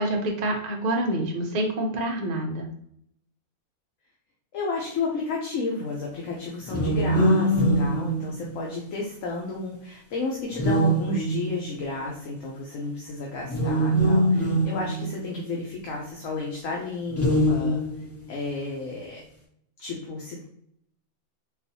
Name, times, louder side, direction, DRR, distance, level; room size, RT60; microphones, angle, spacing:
voice 1, 0.0-2.7, right 1 dB, 60° right, 1 dB, 0.4 m, -27 dB
voice 2, 4.5-17.8 18.3-19.2 19.8-20.4, left 3 dB, 65° left, -2 dB, 1.0 m, -32 dB
sound 1, 6.7-8.9 10.5-11.7 13.4-15.7 17.1-18.2, right 1 dB, 25° left, 0.3 m, -23 dB
3.9 x 2.4 x 2.7 m, 0.71 s
omnidirectional pair, 1.6 m